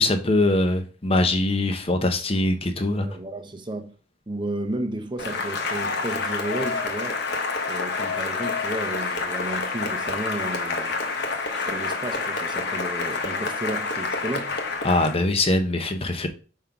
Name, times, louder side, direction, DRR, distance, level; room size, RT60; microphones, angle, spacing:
voice 1, 0.0-3.1 14.8-16.3, left 2 dB, 30° left, 0.8 m, -22 dB
voice 2, 3.0-3.9 4.3-7.2 7.7-10.9 11.5-14.6, right 1 dB, 25° right, 0.8 m, -33 dB
Cheering / Applause, 5.2-15.2, left 3 dB, 55° left, 1.1 m, -28 dB
5.3 x 3.8 x 5.8 m
head